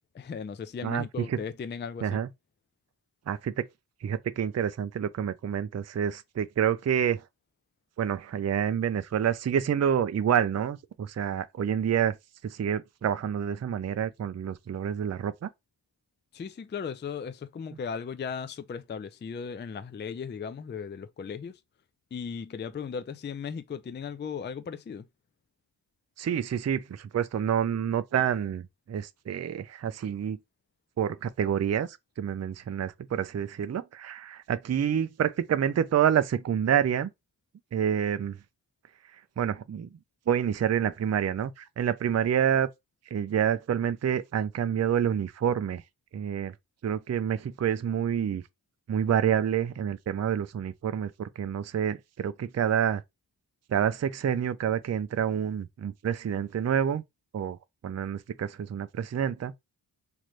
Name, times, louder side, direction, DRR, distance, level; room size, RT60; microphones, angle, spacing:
voice 1, 0.1-2.2 16.3-21.6 22.1-25.1, left 6 dB, 25° left, 0.3 m, -37 dB
voice 2, 0.8-1.4 2.0-2.3 3.3-3.7 4.0-7.2 8.0-12.2 12.4-15.5 26.2-30.4 31.0-37.1 37.7-38.4 39.4-39.9 40.3-42.7 43.1-45.8 46.1-46.5 46.8-48.4 48.9-53.0 53.7-57.0 57.3-57.6 57.8-59.5, right 8 dB, 40° right, 0.4 m, -28 dB
3.2 x 2.5 x 3.0 m
wide cardioid pair, 45°, 44 cm